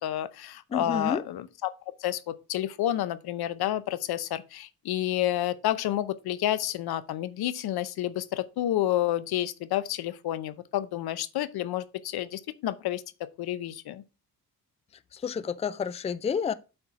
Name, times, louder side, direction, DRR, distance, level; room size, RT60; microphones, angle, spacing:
voice 1, 0.0-1.7 2.0-13.0 13.4-14.0, left 13 dB, 80° left, 0.7 m, -30 dB
voice 2, 0.7-1.2 15.1-16.5, left 6 dB, 20° left, 0.4 m, -30 dB
7.8 x 4.4 x 4.8 m
cardioid pair, 100°, 37 cm